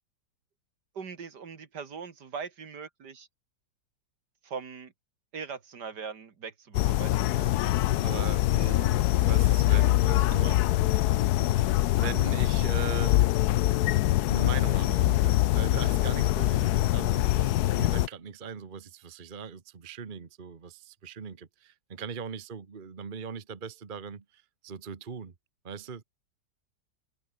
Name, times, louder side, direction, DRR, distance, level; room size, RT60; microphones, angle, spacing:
voice 1, 0.9-3.3 4.4-4.9 5.3-7.6, right 6 dB, 65° right, 2.5 m, -40 dB
sound 1, 6.7-18.1, left 15 dB, 70° left, 1.0 m, -24 dB
voice 2, 8.0-11.7 12.0-13.2 14.3-25.3 25.6-26.0, right 6 dB, 30° right, 1.2 m, -40 dB
omnidirectional pair, 2.0 m